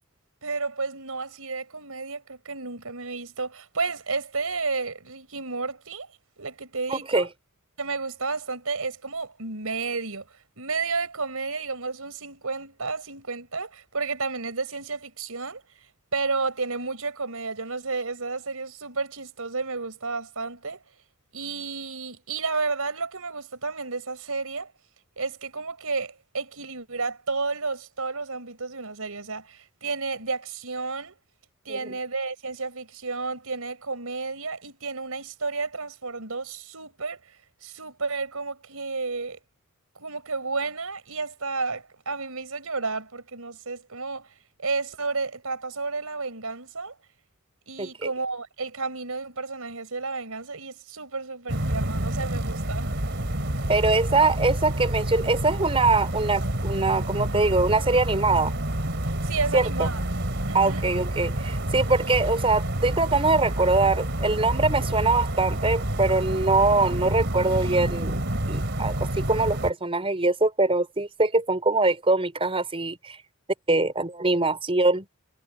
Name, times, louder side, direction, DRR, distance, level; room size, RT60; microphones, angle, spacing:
voice 1, 0.4-6.1 6.4-7.3 7.8-10.3 10.6-15.6 16.1-20.8 21.3-24.7 25.2-31.1 31.6-37.2 37.6-39.4 39.9-44.3 44.6-46.9 47.7-52.9 59.1-60.0 60.5-60.9, right 4 dB, 80° right, 4.4 m, -31 dB
voice 2, 6.9-7.3 31.7-31.8 47.8-47.9 53.7-58.5 59.5-59.9 60.5-68.2 68.5-73.2 73.7-75.1, right 3 dB, 25° right, 4.8 m, -23 dB
sound 1, 51.5-69.7, right 1 dB, 55° right, 3.1 m, -28 dB
head